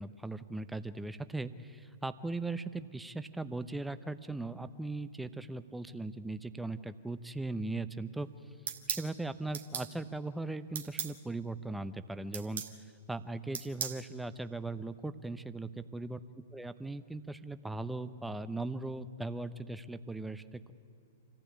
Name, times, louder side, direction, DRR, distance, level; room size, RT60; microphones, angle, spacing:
voice 1, 0.0-8.3 8.9-12.6 13.1-16.2 16.5-20.7, right 2 dB, 5° right, 12 dB, 0.8 m, -39 dB
sound 1, 8.7-9.1 9.5-9.9 10.8-11.1 12.3-12.7 13.5-14.0, right 7 dB, 70° right, 1.8 m, -36 dB
26.0 x 15.0 x 8.5 m, 2.6 s
hypercardioid pair, 115°, 0 cm